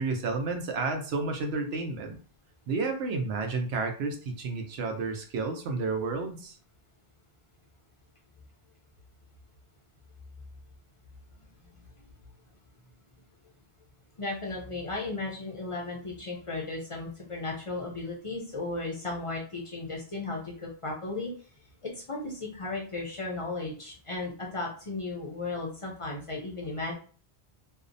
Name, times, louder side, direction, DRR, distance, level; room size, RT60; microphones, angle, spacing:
voice 1, 0.0-2.2 2.7-6.5, right 3 dB, 85° right, 4 dB, 0.8 m, -31 dB
voice 2, 14.2-21.3 21.8-26.9, left 3 dB, 45° left, -2 dB, 0.5 m, -35 dB
2.7 x 2.0 x 2.5 m, 0.41 s
omnidirectional pair, 1.1 m